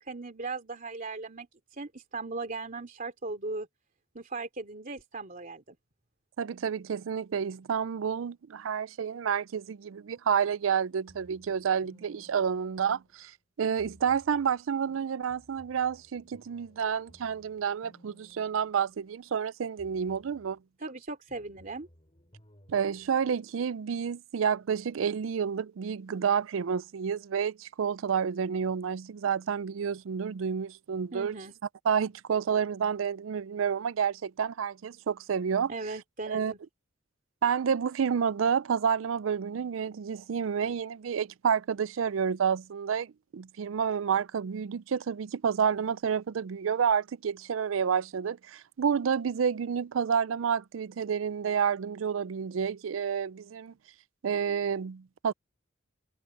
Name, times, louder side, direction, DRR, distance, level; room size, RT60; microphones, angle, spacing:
voice 1, 0.1-3.7 4.1-5.8 20.8-21.9 31.1-31.5 35.7-36.6, right 3 dB, 45° right, 2.8 m, -38 dB
voice 2, 6.4-13.3 13.6-20.6 22.7-31.4 31.9-35.7 36.3-36.5 37.4-53.7 54.2-55.3, right 7 dB, 85° right, 0.4 m, -29 dB
sound 1, 11.1-13.3 13.8-14.6 15.3-19.4 19.8-20.6 21.3-23.1, equal, 30° left, 5.9 m, -59 dB
head